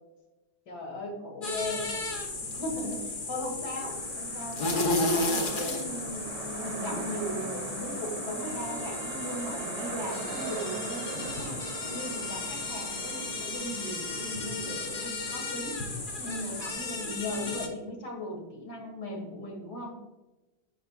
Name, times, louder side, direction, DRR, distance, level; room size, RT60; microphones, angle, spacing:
voice 1, 0.7-1.9 2.6-15.8 16.2-20.0, left 1 dB, 70° left, 1 dB, 2.4 m, -38 dB
sound 1, 1.4-17.7, left 2 dB, 45° left, 0.7 m, -34 dB
sound 2, 3.7-15.1, right 7 dB, 85° right, 1.3 m, -42 dB
Bowed string instrument, 8.3-14.5, right 2 dB, 45° right, 0.8 m, -49 dB
10.5 x 5.1 x 2.4 m, 1.1 s
omnidirectional pair, 1.9 m